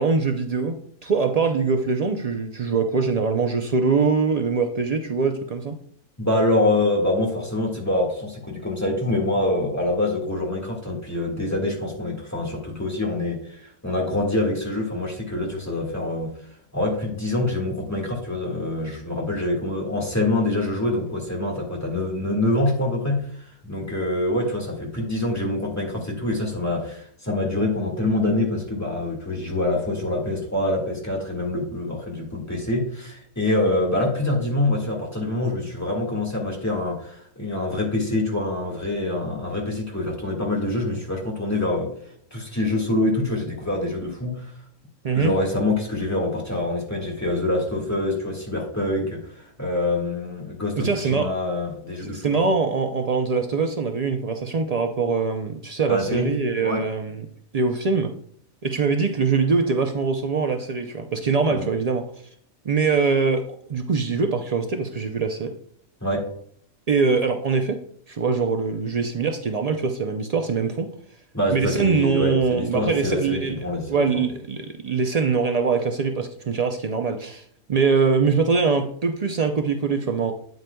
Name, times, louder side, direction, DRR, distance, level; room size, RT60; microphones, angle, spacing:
voice 1, 0.0-5.8 45.0-45.3 50.8-51.3 52.0-57.3 57.5-58.1 58.6-62.1 62.6-63.4 63.7-65.5 66.9-67.8 68.1-70.9 71.5-80.3, right 4 dB, 85° right, 5 dB, 0.3 m, -23 dB
voice 2, 6.2-16.3 16.7-41.9 42.3-44.5 45.1-52.5 55.9-56.3 56.6-56.9 61.5-61.7 66.0-66.3 71.3-74.2, left 1 dB, 10° left, -2 dB, 1.7 m, -25 dB
8.9 x 7.9 x 2.3 m, 0.62 s
omnidirectional pair, 1.5 m